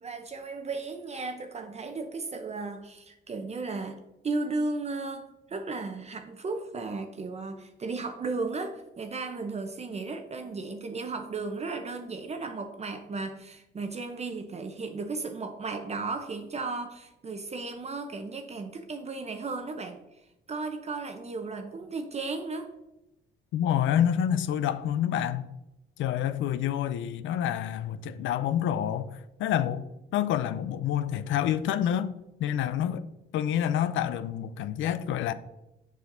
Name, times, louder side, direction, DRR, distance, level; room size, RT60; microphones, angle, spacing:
voice 1, 0.0-4.0 4.2-20.0 20.5-22.7, right 3 dB, 35° right, 0.6 m, -35 dB
voice 2, 23.5-25.5 26.0-29.8 30.1-32.1 32.4-33.0 33.3-35.3, left 10 dB, 80° left, 0.5 m, -28 dB
6.9 x 6.3 x 2.6 m
cardioid pair, 90°, 20 cm